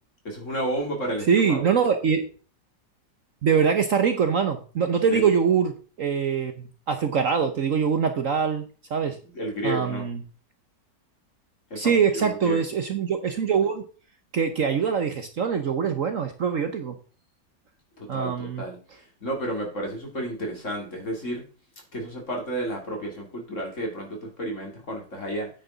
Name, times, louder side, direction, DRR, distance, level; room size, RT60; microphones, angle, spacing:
voice 1, 0.3-1.7 5.1-5.3 9.3-10.1 11.7-12.7 18.0-21.5 21.9-25.5, right 1 dB, 40° left, 1 dB, 3.5 m, -32 dB
voice 2, 1.3-2.3 3.4-5.7 6.0-9.2 9.6-10.2 11.8-13.8 14.3-17.0 18.1-18.6, right 6 dB, 55° right, 7 dB, 1.1 m, -23 dB
9.3 x 9.2 x 3.9 m, 0.38 s
omnidirectional pair, 1.9 m